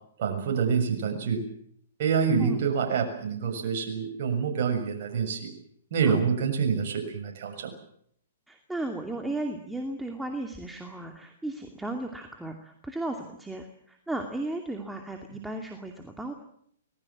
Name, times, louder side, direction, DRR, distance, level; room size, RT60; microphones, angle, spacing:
voice 1, 0.2-1.4 2.0-5.5 5.9-7.7, right 6 dB, 55° right, 3 dB, 6.8 m, -27 dB
voice 2, 8.5-16.3, right 2 dB, 5° right, 3 dB, 2.5 m, -35 dB
24.5 x 20.5 x 7.5 m, 0.67 s
hypercardioid pair, 125°, 0 cm